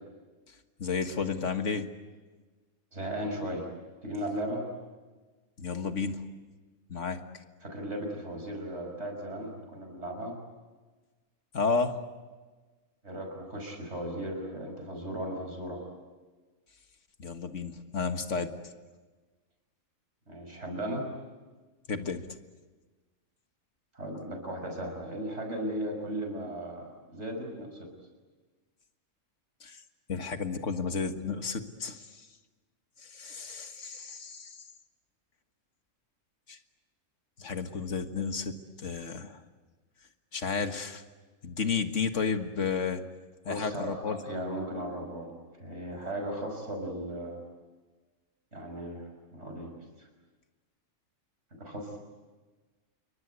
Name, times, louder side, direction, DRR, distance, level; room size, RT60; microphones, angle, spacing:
voice 1, 0.8-1.9 5.6-6.2 6.9-7.2 11.5-12.0 17.2-18.5 21.9-22.3 29.6-29.8 30.1-32.1 33.0-34.6 36.5-36.6 37.4-39.4 40.3-41.0 41.4-43.0 43.5-44.2, left 5 dB, 60° left, 7 dB, 1.9 m, -32 dB
voice 2, 2.9-3.7 4.0-4.7 7.6-10.4 13.0-15.8 20.3-21.1 23.9-27.9 43.4-45.3 45.6-47.4 48.5-49.7 50.0-50.1 51.5-52.0, right 1 dB, 55° right, 2 dB, 6.1 m, -36 dB
28.5 x 23.5 x 8.2 m, 1.3 s
omnidirectional pair, 1.4 m